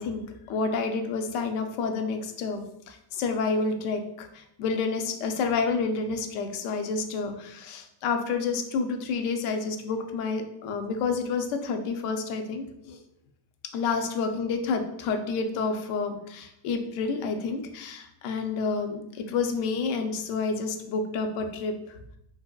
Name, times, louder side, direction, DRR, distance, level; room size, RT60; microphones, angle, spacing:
voice 1, 0.0-13.0 13.7-22.0, left 4 dB, 85° left, 6 dB, 0.6 m, -29 dB
2.7 x 2.2 x 2.3 m, 0.78 s
cardioid pair, 135°, 49 cm